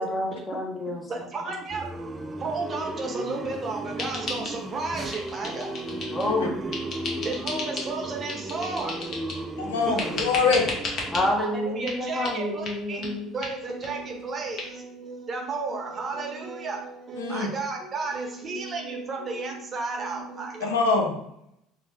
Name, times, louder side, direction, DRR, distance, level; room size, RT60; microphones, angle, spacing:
voice 1, 0.0-1.0 6.1-6.7 11.1-13.3, left 1 dB, 25° left, 0 dB, 0.8 m, -28 dB
voice 2, 1.1-6.3 7.1-9.3 10.0-10.1 11.4-20.7, right 3 dB, 40° right, 1 dB, 0.8 m, -33 dB
sound 1, 1.7-11.3, right 2 dB, 20° right, 0.4 m, -35 dB
sound 2, 4.0-4.8 5.1-6.3 6.7-7.9 8.3-9.5 10.0-11.3 11.9-12.0 12.2-12.4 12.7-12.8 13.0-13.1 13.4-13.5 13.8-13.9 14.2-14.3 14.6-14.7, left 3 dB, 50° left, 0.8 m, -34 dB
voice 3, 9.6-10.7 17.2-17.5 20.6-21.2, left 4 dB, 90° left, 2 dB, 0.4 m, -24 dB
2.7 x 2.0 x 3.3 m, 0.77 s
hypercardioid pair, 70°, 0 cm